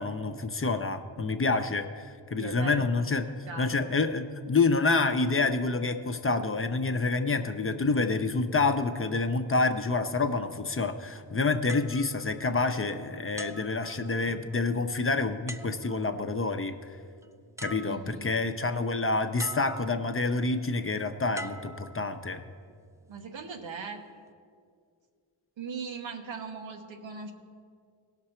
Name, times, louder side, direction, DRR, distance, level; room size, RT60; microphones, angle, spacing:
voice 1, 0.0-3.3 3.6-16.7 17.6-22.4, left 3 dB, 30° left, 7 dB, 0.7 m, -28 dB
voice 2, 2.4-2.8 3.5-3.9 17.8-18.2 23.1-24.0 25.6-27.3, right 5 dB, 85° right, 4 dB, 1.1 m, -39 dB
sound 1, 11.7-12.9 13.4-14.5 15.5-16.2 17.2-17.3 17.6-18.4 19.4-20.2 21.3-22.5 23.2-23.4, right 1 dB, 5° right, 0.4 m, -44 dB
17.0 x 6.0 x 4.4 m, 2.2 s
cardioid pair, 55°, 45 cm